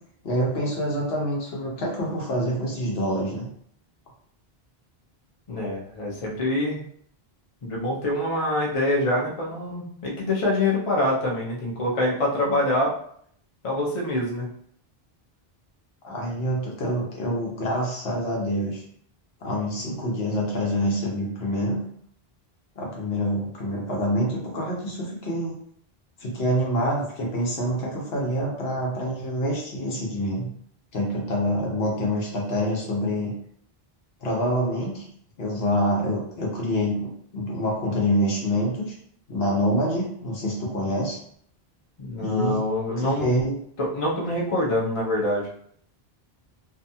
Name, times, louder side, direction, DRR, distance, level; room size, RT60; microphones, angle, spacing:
voice 1, 0.2-3.5 12.5-12.6 16.0-18.8 19.4-21.8 22.8-25.5 26.2-30.5 30.9-33.3 34.2-35.0 35.4-38.9 39.3-41.2 42.2-42.6 43.0-43.5, equal, 75° left, -3 dB, 1.0 m, -26 dB
voice 2, 5.5-6.8 7.6-12.9 13.6-14.5 42.0-43.4 43.8-45.5, left 1 dB, 40° left, -3 dB, 0.7 m, -25 dB
2.7 x 2.2 x 2.6 m, 0.64 s
omnidirectional pair, 1.0 m